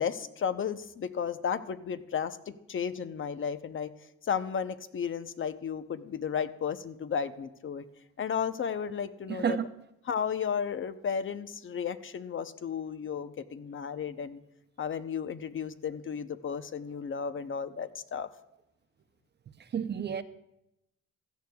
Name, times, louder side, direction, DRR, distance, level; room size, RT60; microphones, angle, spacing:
voice 1, 0.0-3.9 4.2-7.8 8.2-9.6 10.1-14.4 14.8-18.3, left 7 dB, 40° left, 0.7 m, -33 dB
voice 2, 9.3-9.7 19.6-20.2, right 7 dB, 35° right, 0.5 m, -30 dB
16.0 x 12.5 x 2.3 m
cardioid pair, 90°, 30 cm